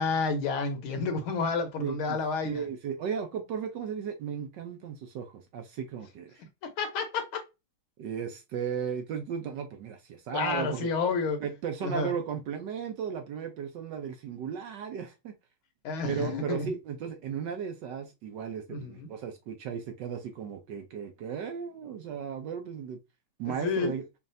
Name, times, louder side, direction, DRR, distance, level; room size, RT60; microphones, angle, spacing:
voice 1, 0.0-2.7 6.6-7.4 10.3-11.4 11.8-12.2 15.8-16.7 18.7-19.1 23.6-23.9, left 4 dB, 75° left, 1.7 m, -30 dB
voice 2, 1.8-2.2 2.4-6.4 8.0-10.9 11.4-15.3 16.0-23.0 23.4-24.0, right 7 dB, 70° right, 1.1 m, -35 dB
5.4 x 2.4 x 2.6 m
omnidirectional pair, 2.3 m